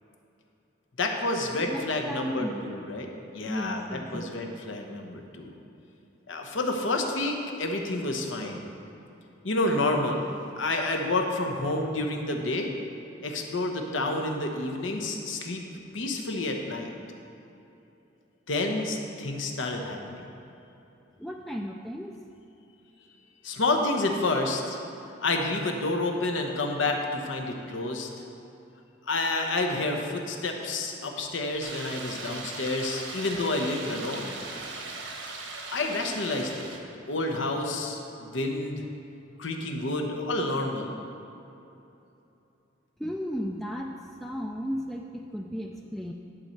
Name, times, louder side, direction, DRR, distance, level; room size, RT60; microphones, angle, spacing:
voice 1, 1.0-3.1 3.3-5.5 6.3-8.6 9.4-10.3 10.6-12.7 13.2-15.6 15.9-16.9 18.5-20.2 23.4-24.8 25.2-28.1 29.0-34.3 35.7-36.7 37.1-38.8 39.4-41.0, left 2 dB, 75° left, 3 dB, 1.0 m, -29 dB
voice 2, 1.7-2.6 3.4-4.3 21.2-22.1 43.0-46.1, equal, ahead, 1 dB, 0.3 m, -35 dB
sound 1, 31.6-36.8, right 3 dB, 85° right, 1.2 m, -39 dB
11.0 x 4.4 x 6.6 m, 2.9 s
head